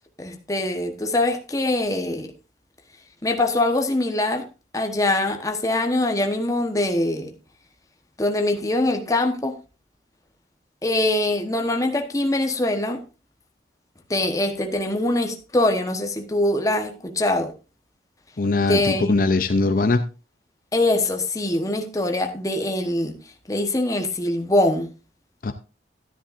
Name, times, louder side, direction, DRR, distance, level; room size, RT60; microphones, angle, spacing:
voice 1, 0.2-2.3 3.2-4.5 4.7-7.3 8.2-9.6 10.8-13.0 14.1-17.5 18.7-19.1 20.7-23.2 23.5-24.9, left 1 dB, 20° left, 1.1 m, -23 dB
voice 2, 18.4-20.0 25.4-25.5, left 3 dB, 50° left, 0.6 m, -21 dB
13.0 x 10.0 x 2.6 m
head